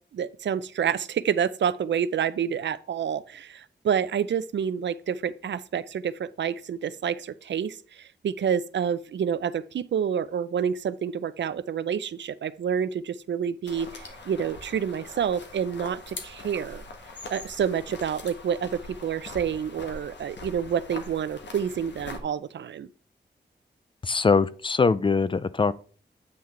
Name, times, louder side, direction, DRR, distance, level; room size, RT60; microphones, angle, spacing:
voice 1, 0.1-16.8 17.3-22.9, right 8 dB, 80° right, 0.5 m, -28 dB
sound 1, 13.7-22.2, left 3 dB, 75° left, 1.4 m, -42 dB
voice 2, 24.0-25.7, left 4 dB, 30° left, 0.4 m, -22 dB
8.7 x 5.8 x 3.2 m
wide cardioid pair, 110°, 18 cm